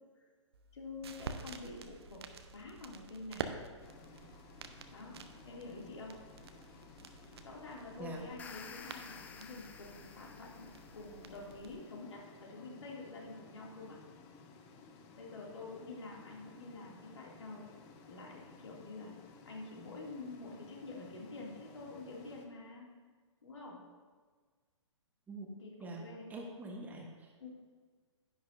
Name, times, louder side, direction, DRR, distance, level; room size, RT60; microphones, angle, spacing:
sound 1, 0.5-11.8, right 5 dB, 55° right, 0.7 m, -49 dB
voice 1, 0.7-2.2 2.5-3.6 4.9-5.2 5.4-6.1 7.4-14.0 15.2-17.7 18.1-19.1 19.5-22.9 23.4-23.8 25.6-26.3 27.4-27.5, left 3 dB, 65° left, -2 dB, 2.5 m, -47 dB
sound 2, 3.8-22.5, left 4 dB, 25° left, 0.8 m, -57 dB
sound 3, 8.2-11.4, left 6 dB, 10° left, 0.4 m, -52 dB
voice 2, 26.3-27.3, right 2 dB, 10° right, 1 dB, 1.2 m, -44 dB
10.5 x 10.0 x 2.7 m, 1.5 s
figure-of-eight pair, 120°, 16 cm